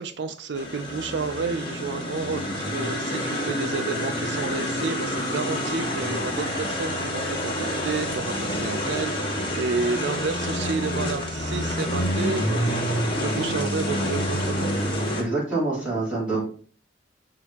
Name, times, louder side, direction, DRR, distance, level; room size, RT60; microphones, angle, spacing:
voice 1, 0.0-14.7, right 4 dB, 70° right, 7 dB, 0.5 m, -31 dB
sound 1, 0.5-15.2, equal, 30° left, 1.7 m, -28 dB
voice 2, 15.2-16.4, right 3 dB, 5° right, -8 dB, 3.7 m, -26 dB
11.0 x 3.8 x 2.9 m, 0.43 s
head